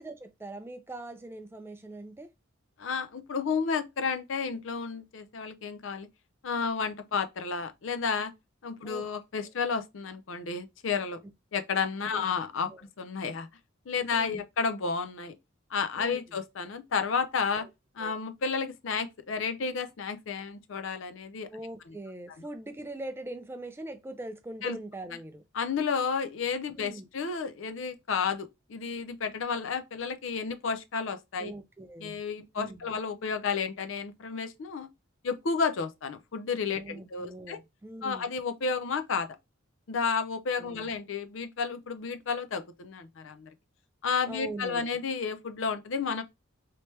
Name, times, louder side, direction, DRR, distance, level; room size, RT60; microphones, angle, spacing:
voice 1, 0.0-2.3 8.8-9.0 12.1-12.2 12.7-12.8 14.1-14.4 16.0-16.2 17.6-17.7 18.0-18.1 21.5-25.4 26.8-27.1 31.4-32.1 32.6-32.8 36.7-38.3 40.6-40.9 44.3-44.8, right 1 dB, 10° right, 0.4 m, -42 dB
voice 2, 2.8-6.1 6.4-8.3 8.6-11.2 11.5-13.5 13.9-15.3 15.7-17.7 18.0-21.5 21.9-22.0 24.6-24.8 25.5-31.5 32.0-34.9 35.2-37.6 38.0-39.3 39.9-43.5 44.0-46.2, left 5 dB, 65° left, 0.5 m, -31 dB
3.2 x 2.9 x 3.2 m
head